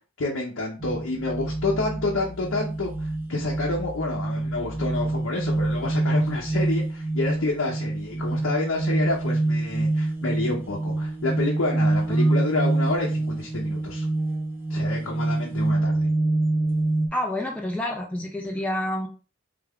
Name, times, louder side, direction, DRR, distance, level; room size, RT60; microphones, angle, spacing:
voice 1, 0.2-14.1 14.7-16.1, left 2 dB, 70° left, -2 dB, 0.7 m, -29 dB
sound 1, 0.8-17.1, right 2 dB, 10° right, 0.8 m, -26 dB
voice 2, 17.1-19.1, left 1 dB, 5° left, 0 dB, 0.4 m, -29 dB
3.3 x 2.3 x 3.4 m, 0.34 s
head